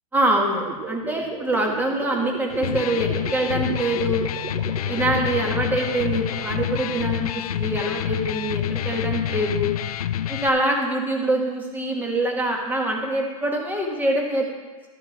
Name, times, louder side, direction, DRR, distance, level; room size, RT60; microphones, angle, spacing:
voice 1, 0.1-4.3 4.9-9.7 10.3-14.5, right 1 dB, 10° right, 1 dB, 1.7 m, -24 dB
sound 1, 0.6-6.8, right 7 dB, 30° right, 0.6 m, -36 dB
Electric guitar, 2.5-10.5, left 10 dB, 90° left, 0.4 m, -27 dB
12.5 x 7.6 x 3.6 m, 1.3 s
hypercardioid pair, 125°, 18 cm